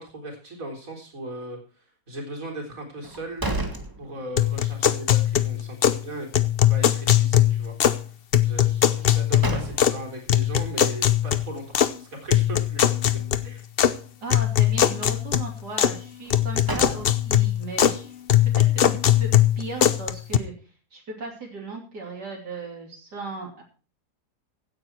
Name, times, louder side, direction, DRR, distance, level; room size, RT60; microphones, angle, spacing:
voice 1, 0.0-3.4 4.0-8.1 8.4-12.8 13.4-13.7, right 1 dB, 55° right, 1 dB, 4.2 m, -38 dB
sound 1, 3.0-4.7 5.0-5.1 8.9-10.2 16.2-17.5, right 2 dB, 15° right, 1.7 m, -33 dB
sound 2, 4.4-6.0 6.3-8.0 8.3-10.0 10.3-11.9 12.3-13.9 14.3-16.0 16.3-18.0 18.3-20.4, left 11 dB, 50° left, 0.7 m, -21 dB
voice 2, 14.2-18.1 18.4-20.5 20.9-23.6, right 3 dB, 80° right, -1 dB, 3.7 m, -37 dB
16.0 x 9.3 x 4.6 m, 0.37 s
omnidirectional pair, 1.8 m